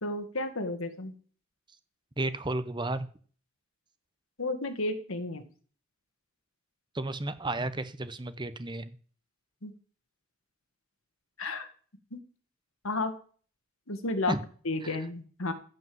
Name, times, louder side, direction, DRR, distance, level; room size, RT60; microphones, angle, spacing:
voice 1, 0.0-1.1 4.4-5.5 9.6-9.7 11.4-11.7 12.1-12.2 12.8-13.1 13.9-14.3 14.7-15.5, left 2 dB, 70° left, 8 dB, 1.9 m, -32 dB
voice 2, 2.2-3.1 6.9-8.9 14.3-14.4 14.8-15.0, right 2 dB, 20° right, 13 dB, 0.8 m, -33 dB
15.0 x 5.4 x 7.8 m, 0.44 s
head